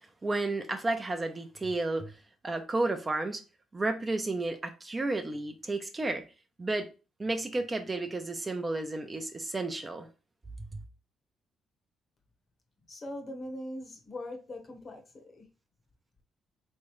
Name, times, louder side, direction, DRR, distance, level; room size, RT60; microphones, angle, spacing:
voice 1, 0.2-2.1 2.4-3.4 3.7-6.2 6.6-6.9 7.2-10.1 10.7-10.8, right 2 dB, 25° right, 0.6 m, -32 dB
voice 2, 12.9-15.5, left 1 dB, 40° left, 1.1 m, -41 dB
3.6 x 3.2 x 3.1 m
cardioid pair, 90°, 0 cm